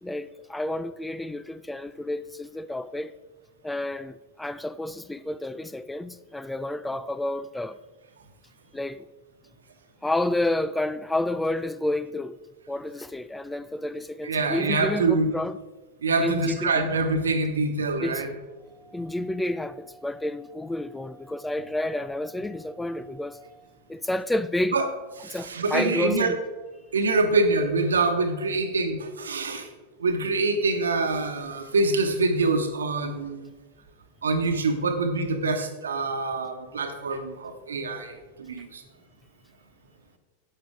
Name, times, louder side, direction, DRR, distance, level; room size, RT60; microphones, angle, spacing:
voice 1, 0.0-3.1 3.6-7.8 8.7-9.1 10.0-12.4 12.7-15.6 16.2-16.9 18.0-18.2 18.7-24.8 25.3-26.4, left 1 dB, 5° left, 0.3 m, -30 dB
voice 2, 14.2-15.3 16.0-18.3 24.7-24.8 25.2-26.3 26.9-29.7 30.0-33.5 34.2-38.1 38.4-38.8, right 3 dB, 70° right, 1.2 m, -25 dB
12.5 x 8.7 x 3.6 m
figure-of-eight pair, 90°, 0 cm